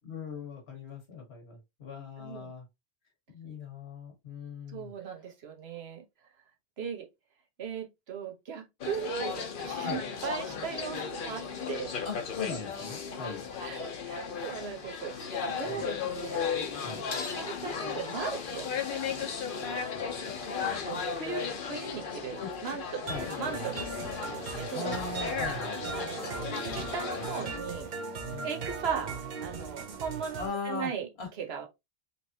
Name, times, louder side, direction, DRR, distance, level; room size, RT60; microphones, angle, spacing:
voice 1, 0.0-2.7 3.3-5.2 9.8-10.0 12.0-13.5 15.6-15.9 16.8-17.0 19.9-20.4 20.6-20.9 22.4-22.8 23.1-23.3 24.7-26.0 28.3-28.5 30.4-30.9 31.2-31.3, left 5 dB, 80° left, 1.7 m, -40 dB
voice 2, 2.2-2.5 4.7-6.0 6.8-7.1 7.6-11.9 13.6-16.5 16.9-19.3 20.9-23.0 23.4-24.9 25.9-27.9 28.4-31.1 31.4-31.7, right 7 dB, 80° right, 1.2 m, -38 dB
sound 1, 8.8-27.6, left 6 dB, 60° left, 0.9 m, -35 dB
sound 2, 23.1-30.5, right 4 dB, 50° right, 0.8 m, -38 dB
4.1 x 3.1 x 2.7 m
omnidirectional pair, 1.0 m